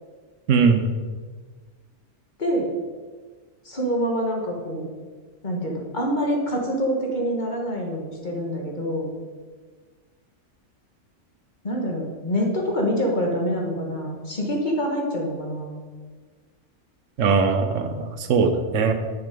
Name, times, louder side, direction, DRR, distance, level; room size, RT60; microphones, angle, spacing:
voice 1, 0.5-0.9 17.2-18.9, right 5 dB, 75° right, 7 dB, 1.1 m, -20 dB
voice 2, 2.4-2.7 3.6-4.9 5.4-9.1 11.6-15.8, equal, 35° left, 0 dB, 1.5 m, -26 dB
6.7 x 6.2 x 5.2 m, 1.5 s
omnidirectional pair, 1.3 m